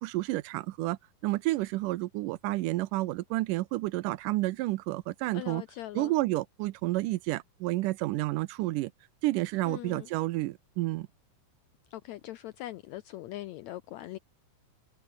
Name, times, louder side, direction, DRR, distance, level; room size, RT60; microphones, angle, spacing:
voice 1, 0.0-5.6 5.9-8.9 9.2-11.1, right 18 dB, 80° right, 2.1 m, -30 dB
voice 2, 5.3-6.1 9.6-10.1 11.9-14.2, left 15 dB, 80° left, 1.6 m, -41 dB
omnidirectional pair, 3.9 m